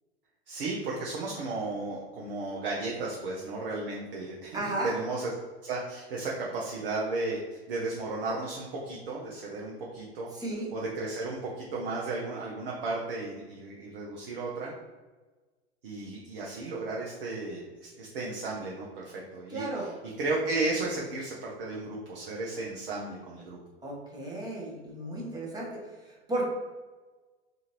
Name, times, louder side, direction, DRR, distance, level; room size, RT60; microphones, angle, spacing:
voice 1, 0.5-5.4 5.6-10.3 10.7-14.7 15.8-23.6, right 2 dB, 55° right, -3 dB, 0.7 m, -34 dB
voice 2, 4.5-4.9 10.3-10.7 19.5-19.9 23.8-25.7 26.0-26.5, right 2 dB, 10° right, -4 dB, 0.9 m, -34 dB
3.8 x 2.5 x 2.9 m, 1.3 s
figure-of-eight pair, 90°, 33 cm